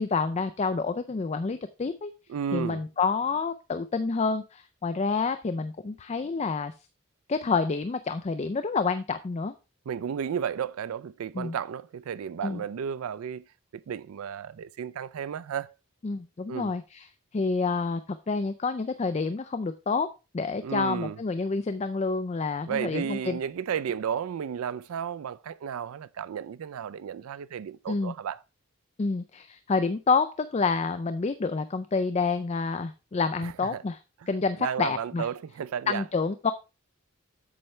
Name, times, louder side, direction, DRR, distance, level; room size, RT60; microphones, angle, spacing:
voice 1, 0.0-2.1 2.5-6.7 7.3-9.5 11.3-11.6 12.4-12.6 16.0-17.1 17.3-18.0 18.3-20.1 20.3-23.4 27.9-28.1 29.0-34.0 34.3-35.3 35.9-36.5, left 4 dB, 30° left, 0.4 m, -28 dB
voice 2, 2.3-2.8 9.9-13.4 13.7-15.7 16.5-16.7 20.6-21.2 22.7-28.4 33.4-33.8 34.2-34.3 34.6-36.0, right 8 dB, 80° right, 0.4 m, -33 dB
8.7 x 6.6 x 3.1 m
head